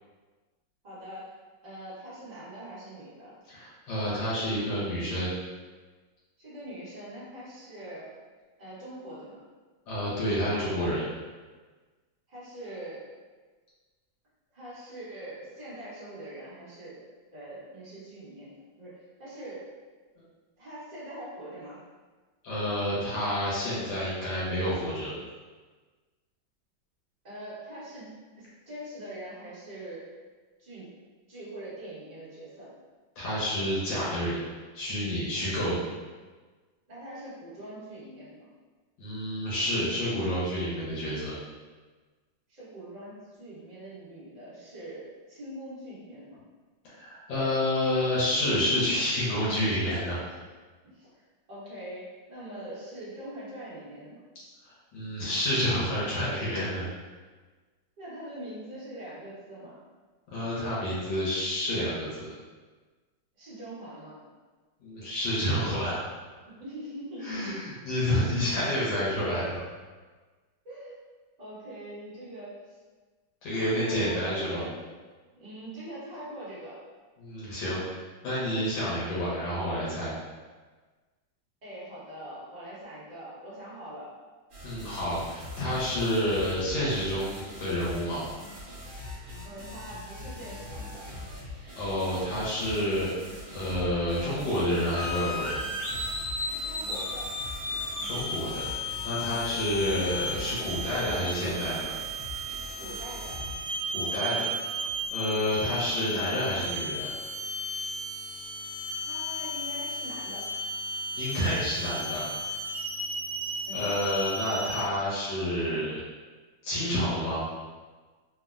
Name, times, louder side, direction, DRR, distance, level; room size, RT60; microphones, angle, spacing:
voice 1, 0.8-1.3 1.6-3.3 6.4-8.1 8.6-9.4 12.3-13.0 14.5-17.0 17.3-18.5 18.8-19.7 20.6-21.8 27.2-28.1 28.4-30.2 30.6-30.9 31.3-32.7 36.9-38.4 42.5-46.4 50.9-51.2 51.5-52.0 52.3-54.2 58.0-59.8 63.4-64.1 66.5-67.4 70.6-70.9 71.4-72.8 73.7-74.7 75.3-76.8 81.6-84.1 89.4-91.0 96.4-97.3 99.5-99.7 102.8-103.4 109.0-110.5 113.6-113.9, right 1 dB, 30° right, -11 dB, 0.9 m, -43 dB
voice 2, 3.5-5.3 9.9-11.1 22.4-25.2 33.2-34.4 34.7-35.8 39.0-41.3 46.8-50.2 54.6-56.9 60.3-62.3 64.8-66.0 67.2-69.6 73.4-74.6 77.2-80.1 84.6-88.2 91.7-93.1 93.5-95.6 97.7-101.9 103.9-104.5 105.1-107.1 111.1-112.4 113.7-116.0 116.6-117.4, equal, 80° left, -8 dB, 1.5 m, -29 dB
sound 1, 84.5-103.6, left 1 dB, 55° right, 0.9 m, -42 dB
sound 2, 94.9-114.8, equal, 60° left, 0.6 m, -34 dB
3.4 x 2.1 x 2.4 m, 1.4 s
omnidirectional pair, 2.1 m